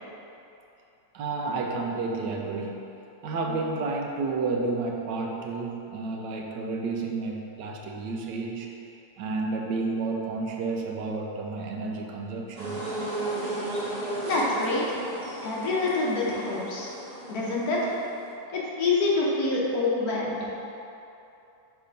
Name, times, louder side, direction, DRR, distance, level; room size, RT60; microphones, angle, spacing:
voice 1, 1.1-2.9 3.2-8.7 9.2-12.8, right 3 dB, 80° right, 1 dB, 1.3 m, -31 dB
sound 1, 12.6-18.3, right 2 dB, 50° right, 1.4 m, -34 dB
voice 2, 14.2-15.0 15.4-16.9 17.3-17.9 18.5-20.4, left 3 dB, 60° left, -5 dB, 1.4 m, -26 dB
5.8 x 3.4 x 5.1 m, 2.8 s
omnidirectional pair, 1.9 m